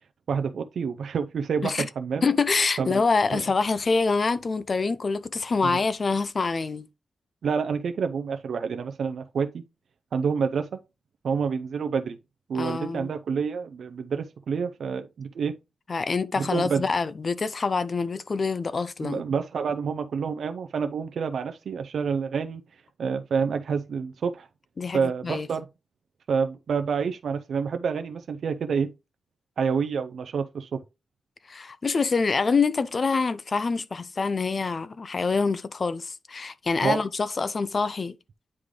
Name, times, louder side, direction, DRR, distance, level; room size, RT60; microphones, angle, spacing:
voice 1, 0.3-2.2 2.8-3.0 3.3-3.4 5.6-5.8 7.4-9.6 10.1-10.8 11.2-12.2 12.5-15.5 16.4-16.8 19.0-22.6 23.0-24.5 24.9-25.6 26.3-28.9 29.6-30.8 36.8-37.0, right 6 dB, 75° right, 0.5 m, -28 dB
voice 2, 2.2-6.9 12.5-13.1 15.9-19.2 24.8-25.5 31.5-38.1, left 4 dB, 45° left, 0.4 m, -26 dB
9.6 x 3.2 x 3.7 m
wide cardioid pair, 110°, 0 cm